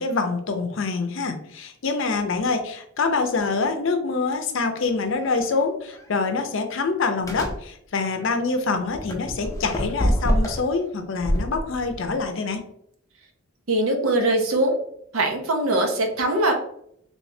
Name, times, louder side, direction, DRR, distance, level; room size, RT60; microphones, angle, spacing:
voice 1, 0.0-12.7, left 4 dB, 60° left, 6 dB, 0.5 m, -25 dB
sound 1, 5.2-5.4 5.9-6.1 7.2-7.6 8.9-10.7 11.2-12.2, equal, 15° left, 0.5 m, -26 dB
voice 2, 13.7-14.8 15.1-16.5, right 1 dB, 75° right, 3 dB, 0.7 m, -21 dB
3.2 x 3.1 x 2.7 m, 0.70 s
head